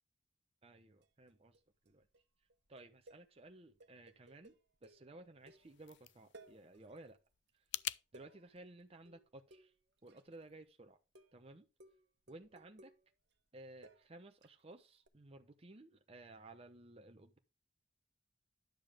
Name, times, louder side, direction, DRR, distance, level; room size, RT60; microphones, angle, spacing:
voice 1, 0.6-1.6 1.9-2.1 2.7-7.2 8.1-9.7 10.0-11.0 11.3-11.7 12.3-12.9 13.5-17.4, right 2 dB, 35° right, 0.8 m, -56 dB
sound 1, 1.0-1.6 1.9-2.2 2.5-6.0 6.3-7.2 7.5-10.7 11.1-11.4 11.8-14.6 15.1-15.2, right 2 dB, 65° right, 1.3 m, -63 dB
sound 2, 5.4-8.0, left 15 dB, 70° left, 0.4 m, -46 dB
10.5 x 7.0 x 3.7 m
head